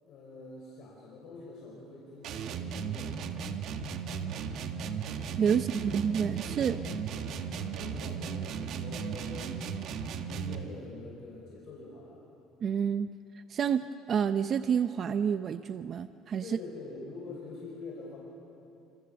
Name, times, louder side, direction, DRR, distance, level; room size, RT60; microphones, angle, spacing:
voice 1, 0.0-3.2 4.2-4.5 5.5-6.0 6.6-9.8 10.2-12.2 16.4-18.2, left 3 dB, 55° left, -4 dB, 6.2 m, -46 dB
sound 1, 2.2-10.7, right 6 dB, 55° right, 1.6 m, -36 dB
voice 2, 5.4-6.8 12.6-13.1 13.5-16.6, right 7 dB, 40° right, 10 dB, 0.6 m, -29 dB
29.0 x 27.0 x 7.1 m, 2.7 s
cardioid pair, 145°, 0 cm